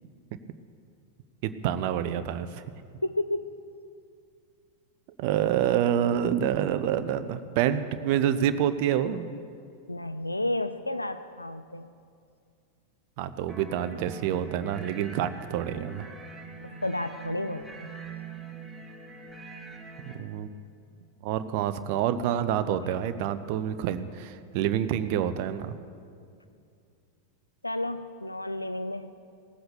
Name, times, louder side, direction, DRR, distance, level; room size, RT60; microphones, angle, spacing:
voice 1, 1.4-2.6 5.2-9.3 13.2-16.1 20.0-20.5 21.2-25.7, right 10 dB, 45° right, 11 dB, 0.6 m, -27 dB
voice 2, 3.0-3.5 9.9-11.9 16.6-17.9 27.6-29.1, left 1 dB, 85° left, 11 dB, 0.4 m, -31 dB
sound 1, 13.5-20.1, right 5 dB, 5° right, 1.6 m, -43 dB
17.5 x 7.8 x 6.8 m, 2.4 s
figure-of-eight pair, 90°, 0 cm